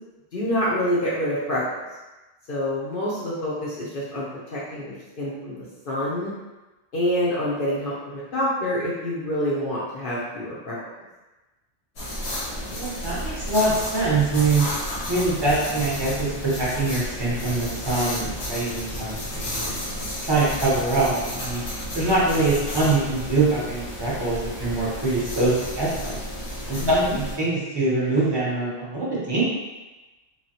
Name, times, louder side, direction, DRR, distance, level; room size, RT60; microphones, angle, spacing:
voice 1, 0.3-1.7 2.5-6.3 6.9-10.8 26.8-27.2, equal, 55° left, -8 dB, 0.7 m, -27 dB
sound 1, 12.0-27.4, equal, 70° left, 1.2 m, -32 dB
voice 2, 12.6-14.7 15.1-19.8 20.2-21.6 21.9-26.2 26.7-29.5, right 2 dB, 25° right, -8 dB, 0.7 m, -24 dB
3.1 x 2.2 x 2.7 m, 1.1 s
omnidirectional pair, 1.3 m